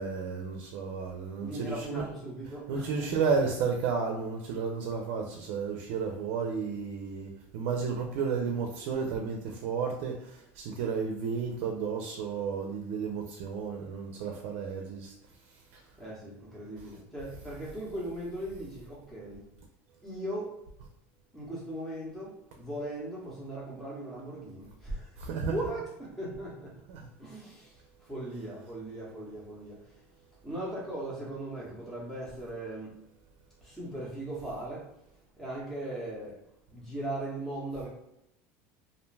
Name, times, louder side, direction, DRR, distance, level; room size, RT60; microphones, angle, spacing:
voice 1, 0.0-2.1 2.7-15.1 15.5-15.8 16.8-16.9 25.2-25.6 26.9-27.1, right 5 dB, 70° right, 2 dB, 0.4 m, -32 dB
voice 2, 1.4-3.5 16.0-19.4 20.0-20.5 21.3-25.1 25.5-26.7 27.2-27.7 28.0-29.8 30.4-32.9 33.6-34.9 35.4-36.4 36.7-37.9, right 1 dB, 5° left, -6 dB, 0.8 m, -38 dB
2.5 x 2.1 x 3.2 m, 0.83 s
supercardioid pair, 140°, 7 cm